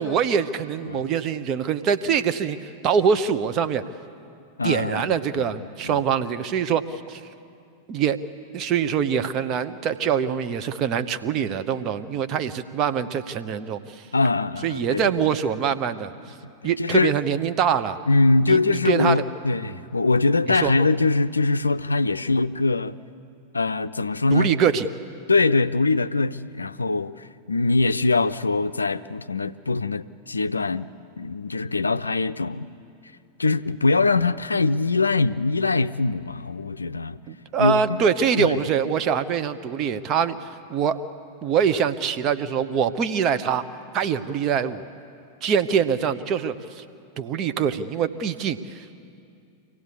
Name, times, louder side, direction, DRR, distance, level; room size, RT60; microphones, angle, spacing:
voice 1, 0.0-3.8 4.6-7.2 7.9-8.2 8.5-14.1 14.6-16.1 16.6-18.0 18.4-19.2 19.6-19.8 20.5-20.7 24.3-24.9 37.3-41.0 41.4-43.7 43.9-44.9 45.4-46.8 47.2-48.8, right 7 dB, 35° right, 0.9 m, -24 dB
voice 2, 4.6-6.0 14.1-15.1 16.6-17.1 18.1-23.0 23.5-24.5 25.3-30.9 31.2-32.7 33.4-37.2 37.6-38.1 38.4-38.7, left 3 dB, 80° left, 0.5 m, -23 dB
25.5 x 17.0 x 8.4 m
figure-of-eight pair, 90°, 0 cm